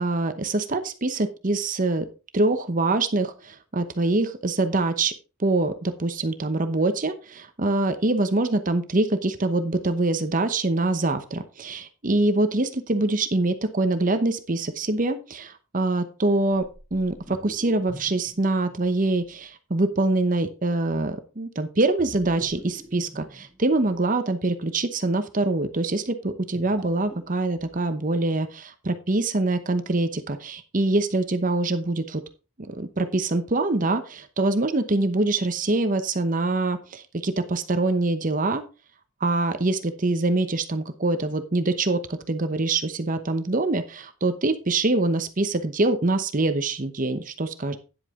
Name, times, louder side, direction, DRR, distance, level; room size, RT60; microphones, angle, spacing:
voice 1, 0.0-2.1 2.3-5.1 5.4-16.6 16.9-32.2 32.7-38.6 39.2-47.8, right 2 dB, 40° right, 9 dB, 0.9 m, -24 dB
sound 1, 16.5-19.3 22.0-24.0 26.4-27.8, equal, 20° right, 4.7 m, -46 dB
9.9 x 8.0 x 3.7 m, 0.32 s
head